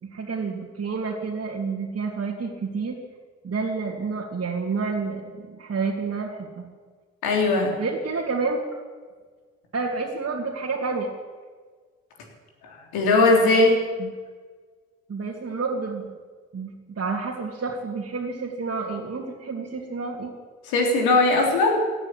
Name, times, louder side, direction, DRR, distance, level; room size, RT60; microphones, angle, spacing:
voice 1, 0.0-3.0 3.4-6.7 7.8-8.6 9.7-11.1 14.0-14.1 15.1-16.1 16.5-20.3, right 4 dB, 40° right, -4 dB, 2.8 m, -29 dB
voice 2, 7.2-7.7 12.9-13.8 20.7-21.9, left 2 dB, 70° left, 1 dB, 3.7 m, -19 dB
16.5 x 9.8 x 8.5 m, 1.5 s
hypercardioid pair, 45°, 38 cm